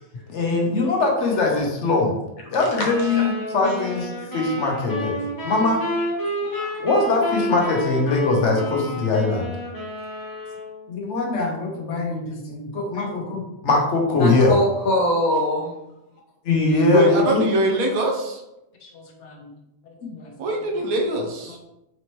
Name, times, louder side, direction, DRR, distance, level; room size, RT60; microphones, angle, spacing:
voice 1, 0.3-2.1 2.5-5.1 5.4-5.8 6.8-9.5 10.9-14.6 16.4-17.4 18.8-19.5 20.0-20.3, left 3 dB, 60° left, 0 dB, 1.0 m, -22 dB
sound 1, 2.8-10.8, equal, 20° left, 0.8 m, -30 dB
voice 2, 6.4-6.8 14.2-15.7, left 1 dB, 85° left, -1 dB, 1.4 m, -23 dB
voice 3, 16.9-18.4 20.4-21.6, right 1 dB, 90° right, 2 dB, 1.1 m, -22 dB
4.2 x 2.8 x 3.0 m, 0.90 s
omnidirectional pair, 1.4 m